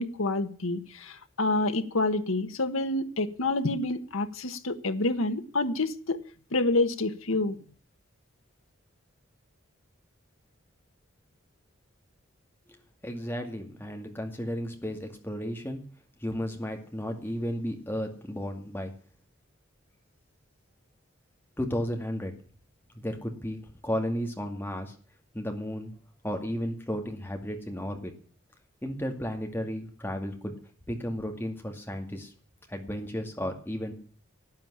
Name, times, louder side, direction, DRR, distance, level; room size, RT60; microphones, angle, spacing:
voice 1, 0.0-6.2 6.5-7.6, left 2 dB, 80° left, 1.4 m, -28 dB
voice 2, 13.0-15.8 16.2-18.9 21.6-22.3 23.0-24.9 25.3-25.9 26.2-28.1 28.8-30.6 30.9-32.3 32.7-33.9, equal, 10° left, 2.2 m, -33 dB
12.0 x 8.9 x 9.9 m
head